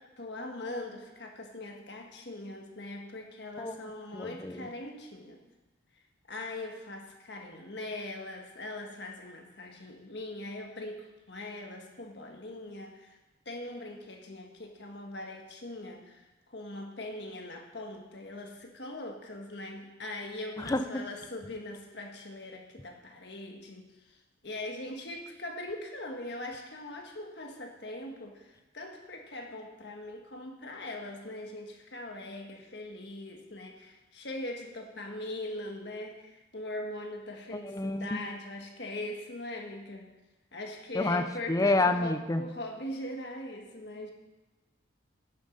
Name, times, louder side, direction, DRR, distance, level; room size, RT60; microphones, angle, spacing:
voice 1, 0.0-5.4 6.3-13.2 13.4-24.2 24.4-40.1 40.5-44.1, left 1 dB, 55° left, 2 dB, 1.5 m, -41 dB
voice 2, 4.1-4.7 20.6-21.0 37.6-38.2 40.9-42.4, left 2 dB, 15° left, 9 dB, 0.5 m, -29 dB
11.0 x 7.1 x 5.2 m, 1.1 s
head